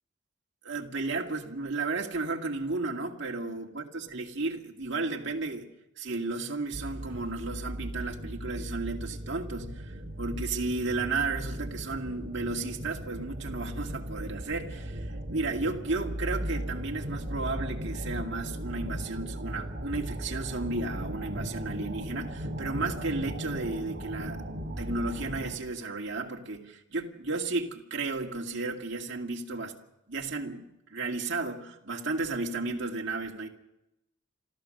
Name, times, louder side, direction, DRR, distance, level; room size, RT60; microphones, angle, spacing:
voice 1, 0.6-5.7 6.0-24.4 24.8-29.8 30.1-33.5, right 3 dB, 55° right, 1 dB, 2.3 m, -33 dB
sound 1, 6.7-25.6, equal, 40° right, 2.2 m, -37 dB
28.5 x 14.0 x 6.6 m, 0.89 s
head